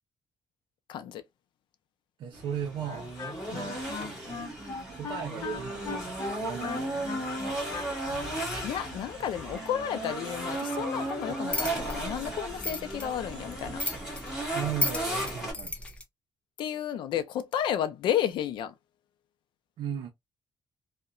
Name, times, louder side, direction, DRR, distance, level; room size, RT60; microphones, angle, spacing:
voice 1, 0.9-1.2 3.5-3.8 8.6-13.8 16.6-18.7, left 10 dB, 80° left, 0.4 m, -32 dB
voice 2, 2.2-3.2 3.5-3.8 4.9-7.7 14.5-15.7 19.8-20.1, right 9 dB, 80° right, 0.5 m, -37 dB
sound 1, 2.3-15.5, right 1 dB, 5° right, 1.5 m, -35 dB
Wind instrument woodwind instrument, 2.8-8.4, left 4 dB, 40° left, 0.8 m, -38 dB
sound 2, 11.5-16.0, left 1 dB, 15° left, 0.5 m, -35 dB
2.7 x 2.1 x 2.4 m
cardioid pair, 165°, 8 cm